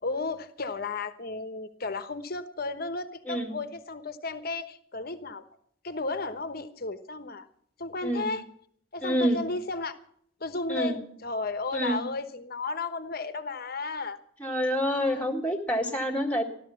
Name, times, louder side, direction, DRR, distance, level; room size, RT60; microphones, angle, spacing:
voice 1, 0.0-5.5 5.8-7.5 7.8-8.5 8.9-9.9 10.4-14.2 15.0-15.3 15.8-15.9, left 3 dB, 45° left, 11 dB, 1.1 m, -34 dB
voice 2, 3.3-3.6 8.0-8.3 9.0-9.4 10.7-11.0 11.7-12.0 14.4-16.4, equal, 5° left, 4 dB, 2.1 m, -27 dB
15.0 x 12.5 x 7.0 m, 0.65 s
head